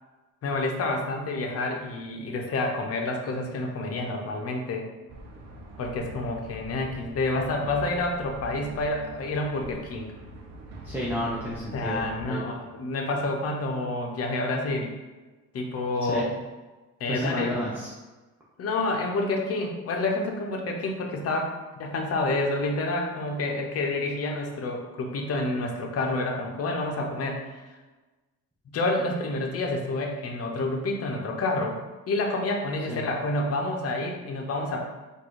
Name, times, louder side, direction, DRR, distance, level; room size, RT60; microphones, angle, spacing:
voice 1, 0.4-4.9 5.8-10.1 11.7-14.9 15.5-16.3 17.0-17.5 18.6-27.6 28.7-31.8 32.1-34.8, left 2 dB, 45° left, 2 dB, 0.9 m, -28 dB
sound 1, 5.1-12.3, right 1 dB, 55° right, 0.9 m, -43 dB
voice 2, 10.8-12.4 16.1-16.3 17.1-17.9 32.9-33.0, equal, 5° right, -6 dB, 0.9 m, -31 dB
3.9 x 2.7 x 4.7 m, 1.2 s
cardioid pair, 105°, 33 cm